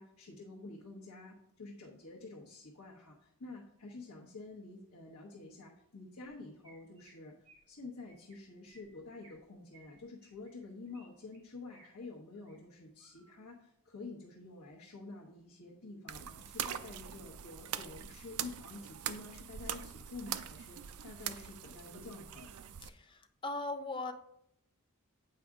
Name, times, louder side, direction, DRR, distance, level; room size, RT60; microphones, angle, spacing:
voice 1, 0.0-7.3 7.7-22.6, left 3 dB, 85° left, -3 dB, 1.1 m, -49 dB
Chirp tweet, 6.6-7.1 7.4-7.7 8.0-8.4 8.7-9.4 9.7-11.1 11.3-11.9 12.3-12.6 13.0-13.4, right 3 dB, 60° right, 2.6 m, -63 dB
sound 1, 16.1-22.9, right 10 dB, 85° right, 0.4 m, -42 dB
voice 2, 22.8-24.1, left 2 dB, 20° left, 7 dB, 0.4 m, -39 dB
7.7 x 4.8 x 3.7 m, 0.73 s
head